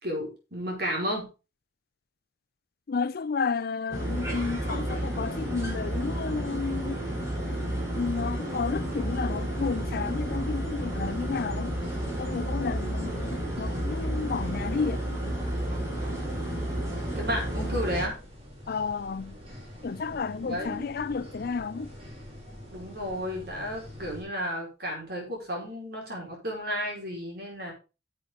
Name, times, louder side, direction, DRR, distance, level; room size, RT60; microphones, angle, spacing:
voice 1, 0.0-1.3 17.1-18.2 20.4-20.8 22.7-27.7, equal, 55° right, 4.8 m, -33 dB
voice 2, 2.9-7.0 8.0-11.8 12.2-15.0 18.7-19.4 19.8-21.9, left 5 dB, 55° left, 0.4 m, -32 dB
sound 1, 3.9-18.1, right 1 dB, 15° right, 3.7 m, -31 dB
sound 2, 9.6-24.2, equal, 35° right, 3.3 m, -46 dB
10.0 x 7.5 x 3.8 m
head